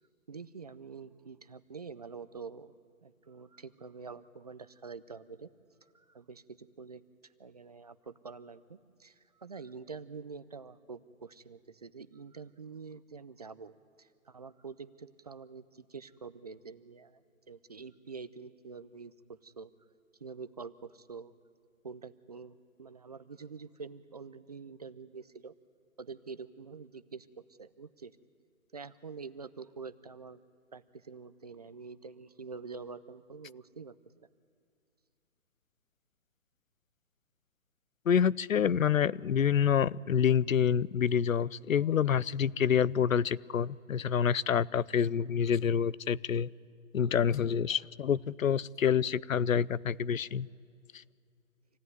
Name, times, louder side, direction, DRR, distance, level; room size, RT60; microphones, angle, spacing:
voice 1, 0.3-2.7 3.0-5.5 5.8-7.0 7.4-19.7 20.2-21.3 21.8-25.5 26.0-28.2 28.7-30.4 30.7-33.9, right 5 dB, 30° right, 13 dB, 0.5 m, -46 dB
voice 2, 38.1-46.5 46.9-50.5, left 8 dB, 80° left, 21 dB, 0.7 m, -27 dB
26.5 x 17.0 x 9.4 m, 2.3 s
hypercardioid pair, 155°, 40 cm